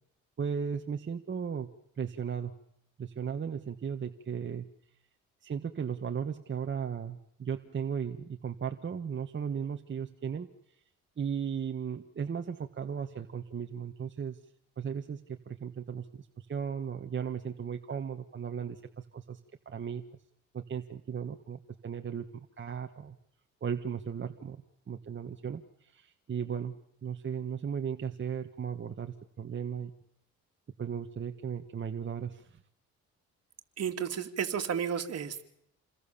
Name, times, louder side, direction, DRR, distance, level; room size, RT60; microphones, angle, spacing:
voice 1, 0.4-1.7 1.9-2.5 3.0-4.7 5.4-10.8 11.2-14.4 14.8-19.4 19.6-20.0 20.5-23.2 23.6-24.6 24.9-29.9 30.8-32.6, right 7 dB, 40° right, 5 dB, 1.7 m, -36 dB
voice 2, 33.8-35.5, right 8 dB, 55° right, 5 dB, 3.2 m, -32 dB
28.5 x 21.5 x 7.2 m, 0.76 s
cardioid pair, 90°, 30 cm